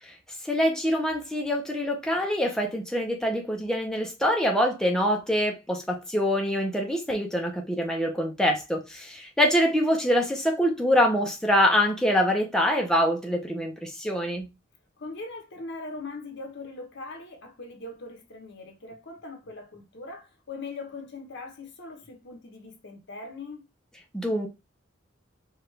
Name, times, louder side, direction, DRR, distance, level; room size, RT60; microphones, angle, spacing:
voice 1, 0.4-14.5 24.1-24.5, equal, 5° left, 0.7 m, -25 dB
voice 2, 15.0-23.7, left 3 dB, 65° left, 0.9 m, -40 dB
4.8 x 2.5 x 3.2 m
head